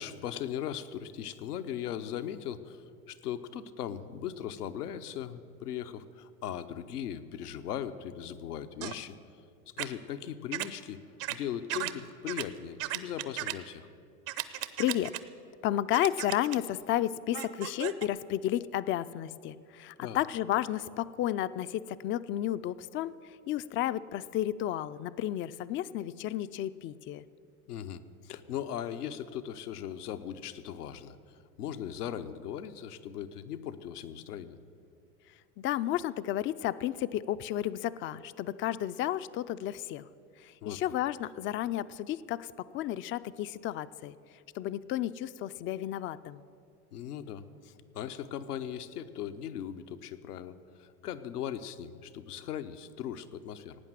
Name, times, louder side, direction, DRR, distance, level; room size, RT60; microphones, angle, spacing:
voice 1, 0.0-9.2 9.8-11.0 11.3-13.9 20.0-20.2 27.7-34.6 40.6-40.9 46.9-53.8, left 9 dB, 85° left, 10 dB, 0.9 m, -39 dB
sound 1, 8.8-9.0 9.8-9.9 10.5-10.7 11.2-11.4 11.7-11.9 12.3-12.4 12.8-13.5 14.3-15.2 15.9-16.6 17.3-18.1, right 15 dB, 60° right, 1.0 m, -35 dB
voice 2, 14.5-15.1 15.6-27.2 35.6-40.1 40.4-44.2 44.5-46.4, left 12 dB, 30° left, 15 dB, 0.4 m, -32 dB
17.5 x 9.1 x 7.5 m, 2.4 s
hypercardioid pair, 90°, 45 cm